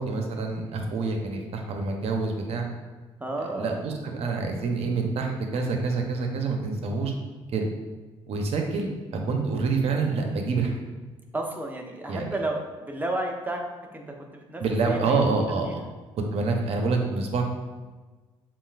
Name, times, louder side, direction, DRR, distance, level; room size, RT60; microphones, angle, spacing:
voice 1, 0.0-2.7 3.4-7.1 7.5-7.6 8.3-10.7 12.1-12.4 14.6-15.8 16.3-17.4, right 4 dB, 65° right, 3 dB, 0.7 m, -27 dB
voice 2, 3.2-3.8 11.3-13.7 13.9-15.2 15.7-15.9, right 1 dB, 15° right, 1 dB, 0.8 m, -32 dB
7.1 x 2.5 x 2.4 m, 1.3 s
supercardioid pair, 65°, 11 cm